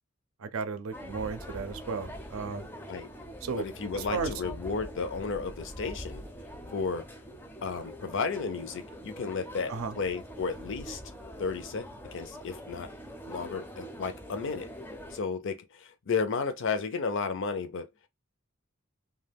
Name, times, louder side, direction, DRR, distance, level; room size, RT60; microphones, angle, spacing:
voice 1, 0.4-2.7 3.4-3.6 3.9-4.3 9.7-9.9, right 4 dB, 75° right, 0.5 m, -34 dB
sound 1, 0.9-15.2, equal, 10° left, 0.5 m, -44 dB
voice 2, 3.6-6.3 6.7-7.1 7.6-11.0 11.4-12.9 13.3-14.7 15.1-17.9, left 4 dB, 60° left, 0.6 m, -33 dB
2.3 x 2.3 x 3.4 m
head